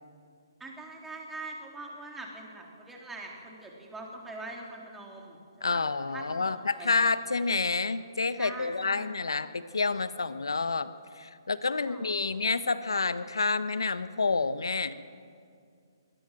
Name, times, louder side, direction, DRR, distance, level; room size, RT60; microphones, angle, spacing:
voice 1, 0.6-6.9 7.3-7.5 8.4-9.2 11.7-12.4, right 2 dB, 5° right, -1 dB, 3.5 m, -43 dB
voice 2, 5.6-10.9 11.2-15.0, left 4 dB, 80° left, 13 dB, 1.1 m, -29 dB
22.0 x 18.0 x 7.7 m, 2.3 s
figure-of-eight pair, 140°, 2 cm